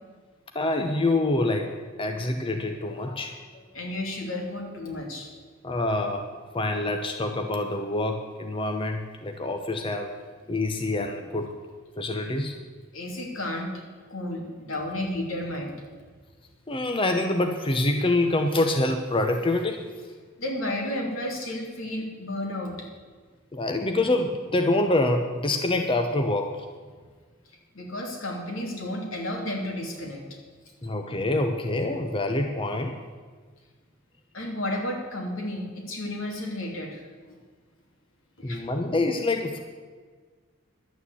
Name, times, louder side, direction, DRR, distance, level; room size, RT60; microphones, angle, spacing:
voice 1, 0.5-1.7 2.0-3.6 5.6-6.3 6.5-10.1 10.5-11.5 12.0-12.6 16.7-19.8 23.5-26.7 30.8-33.0 38.4-39.6, left 2 dB, 25° left, 5 dB, 0.8 m, -26 dB
voice 2, 3.7-5.3 12.9-15.7 20.4-22.9 27.7-30.4 34.3-37.0 38.4-38.6, left 1 dB, 80° left, 0 dB, 3.0 m, -32 dB
11.5 x 8.7 x 8.4 m, 1.5 s
head